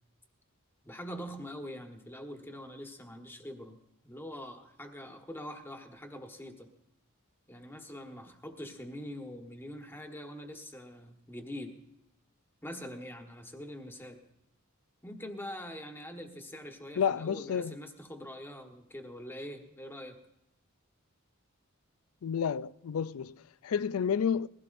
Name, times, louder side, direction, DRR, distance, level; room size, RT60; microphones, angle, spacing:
voice 1, 0.8-3.8 4.0-6.7 7.5-11.8 12.6-14.2 15.0-20.2, equal, 10° left, 1.4 m, -44 dB
voice 2, 17.0-17.7 22.2-24.5, left 7 dB, 75° left, 0.4 m, -30 dB
21.5 x 16.0 x 2.6 m
head